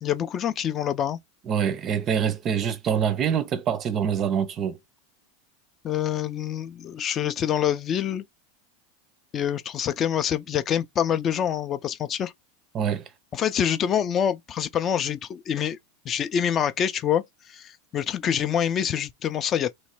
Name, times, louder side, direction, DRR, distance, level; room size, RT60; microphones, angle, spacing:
voice 1, 0.0-1.2 5.8-8.2 9.3-12.3 13.3-15.8 16.1-19.7, left 9 dB, 25° left, 0.4 m, -26 dB
voice 2, 1.5-4.8 12.7-13.0, right 8 dB, 30° right, 0.5 m, -25 dB
3.1 x 3.0 x 4.4 m
supercardioid pair, 150°, 0 cm